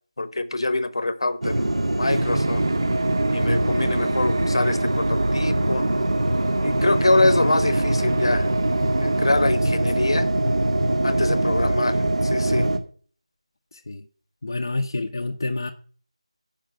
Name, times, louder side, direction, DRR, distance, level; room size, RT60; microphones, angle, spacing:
voice 1, 0.2-2.6 3.3-5.8 6.6-8.5 9.0-10.3 11.0-12.0 12.2-12.7, left 2 dB, 50° left, 1.0 m, -24 dB
sound 1, 1.4-12.8, right 1 dB, 70° right, 1.9 m, -22 dB
sound 2, 2.0-9.3, right 3 dB, 30° right, 0.4 m, -34 dB
voice 2, 13.7-14.1 14.4-15.7, left 2 dB, 35° left, 0.7 m, -28 dB
10.0 x 5.2 x 7.4 m
figure-of-eight pair, 175°, 3 cm